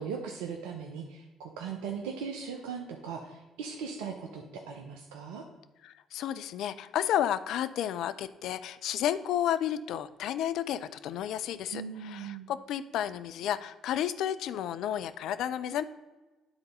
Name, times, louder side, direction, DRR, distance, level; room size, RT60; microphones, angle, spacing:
voice 1, 0.0-5.4 11.7-12.5, right 6 dB, 80° right, 1 dB, 0.7 m, -39 dB
voice 2, 5.8-15.8, left 10 dB, 65° left, 13 dB, 0.4 m, -32 dB
9.7 x 4.0 x 5.3 m, 1.2 s
hypercardioid pair, 50°, 0 cm